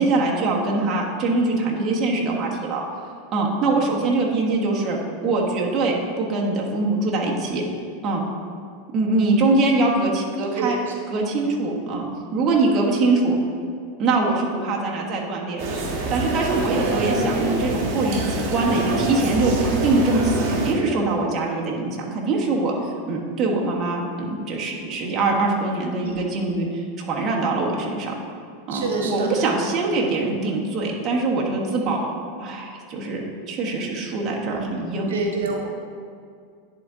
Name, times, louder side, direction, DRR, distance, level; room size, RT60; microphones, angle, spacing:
voice 1, 0.0-2.8 3.3-5.0 5.2-7.6 8.0-8.2 8.9-10.8 11.1-13.4 14.0-15.8 16.1-28.1 28.7-32.0 32.4-35.1, right 3 dB, 35° right, -2 dB, 1.4 m, -23 dB
sound 1, 15.6-20.7, right 2 dB, 50° right, 1.4 m, -25 dB
voice 2, 26.0-26.5 28.7-29.3 34.4-34.8 35.1-35.7, right 4 dB, 85° right, 2 dB, 0.7 m, -28 dB
10.5 x 3.9 x 3.7 m, 2.2 s
hypercardioid pair, 120°, 0 cm